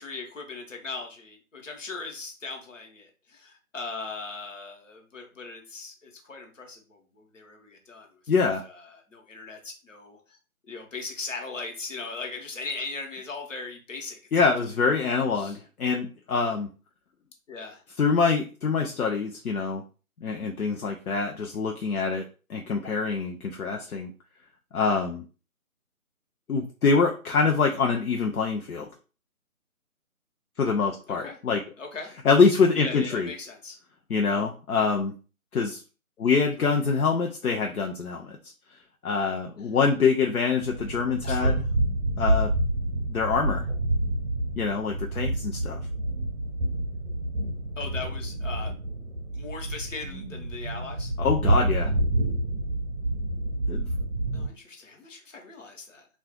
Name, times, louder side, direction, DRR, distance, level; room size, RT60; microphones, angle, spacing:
voice 1, 0.0-8.1 8.6-10.4 10.7-14.4 15.4-15.6 17.5-17.8 31.1-31.4 31.8-32.1 32.7-33.8 36.6-36.8 41.2-41.6 47.8-48.7 49.3-51.1 54.3-56.1, left 3 dB, 60° left, 2 dB, 1.1 m, -39 dB
voice 2, 8.3-8.6 14.3-16.7 18.0-19.8 20.2-24.1 24.7-25.2 26.5-28.9 30.6-31.6 32.2-33.3 34.1-35.1 35.5-35.8 36.2-38.4 39.0-41.6 42.2-42.5 43.1-43.6 44.6-45.8 51.2-51.9 53.7-53.8, left 5 dB, 75° left, 3 dB, 0.6 m, -25 dB
sound 1, 40.6-54.5, right 1 dB, 50° right, 0.7 m, -28 dB
2.4 x 2.4 x 3.7 m, 0.35 s
figure-of-eight pair, 165°, 44 cm